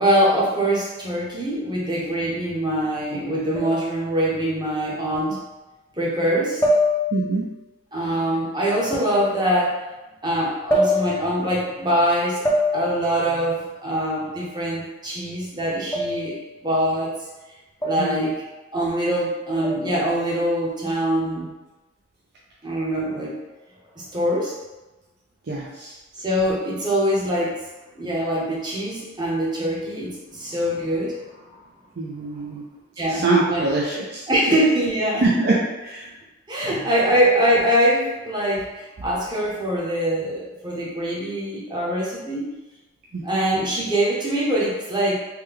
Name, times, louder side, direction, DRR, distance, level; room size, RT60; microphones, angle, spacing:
voice 1, 0.0-5.4 6.0-6.6 7.9-9.8 10.2-12.4 12.7-17.1 17.8-18.4 18.7-21.5 22.6-23.4 24.0-24.5 26.2-27.6 28.0-31.6 33.0-33.7 34.3-35.6 36.5-42.5 43.2-45.2, right 1 dB, 20° right, -5 dB, 0.8 m, -23 dB
sound 1, 3.5-3.9 5.1-5.2 6.6-7.4 8.9-9.1 10.7-11.4 12.4-13.1 15.9-16.4 17.8-18.2 19.6-20.0, left 1 dB, 15° left, 0.5 m, -23 dB
voice 2, 7.1-7.5 18.0-18.3 25.5-26.0 32.0-32.6 33.1-34.3 35.2-36.1 36.6-36.8 43.1-43.2, right 3 dB, 55° right, -5 dB, 0.4 m, -24 dB
3.3 x 2.2 x 3.3 m, 1.1 s
head